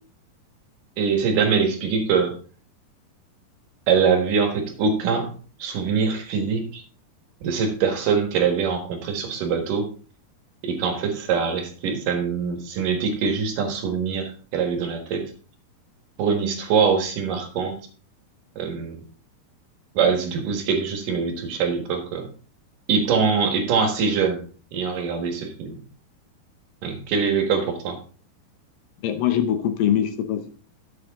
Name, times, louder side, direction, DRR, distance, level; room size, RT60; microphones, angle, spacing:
voice 1, 1.0-2.3 3.9-5.3 5.6-6.8 7.4-9.9 10.6-15.3 16.2-17.8 18.6-19.0 19.9-22.3 22.9-24.4 24.7-25.8 26.8-28.0, right 6 dB, 65° right, 5 dB, 2.9 m, -23 dB
voice 2, 29.0-30.5, left 10 dB, 75° left, 8 dB, 2.3 m, -22 dB
12.5 x 7.9 x 3.6 m, 0.38 s
omnidirectional pair, 4.4 m